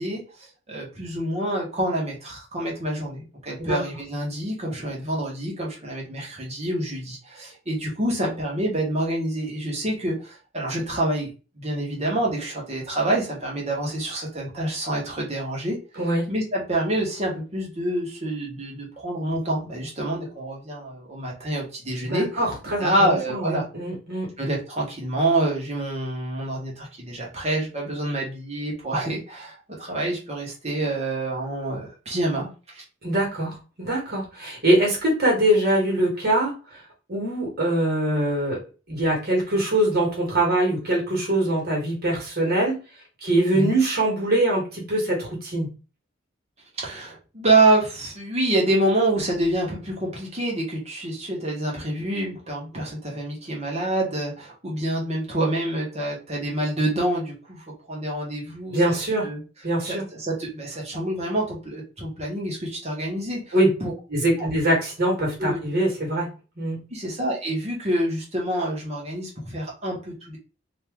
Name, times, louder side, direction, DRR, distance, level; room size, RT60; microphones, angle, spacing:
voice 1, 0.0-15.8 16.3-22.3 22.8-23.6 24.4-32.5 32.7-32.8 43.5-43.7 46.8-58.8 59.2-59.4 59.9-63.9 64.4-64.5 65.4-65.6 66.9-70.4, right 1 dB, 35° right, -2 dB, 1.4 m, -27 dB
voice 2, 22.0-24.3 33.0-36.5 37.1-38.6 38.9-42.7 43.2-45.7 58.7-59.3 59.6-60.0 63.5-63.7 64.1-66.3 66.6-66.8, right 1 dB, 55° right, -2 dB, 1.6 m, -23 dB
3.0 x 2.9 x 3.6 m, 0.33 s
head